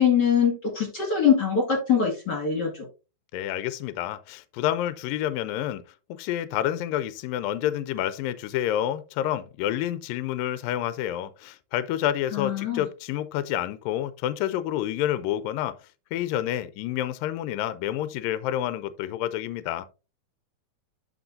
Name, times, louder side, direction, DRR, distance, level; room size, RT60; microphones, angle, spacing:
voice 1, 0.0-2.9 12.3-12.8, left 7 dB, 35° left, 1.8 m, -23 dB
voice 2, 3.3-5.8 6.2-15.8 16.1-19.9, left 12 dB, 80° left, 2.2 m, -28 dB
13.0 x 4.5 x 2.6 m
omnidirectional pair, 4.4 m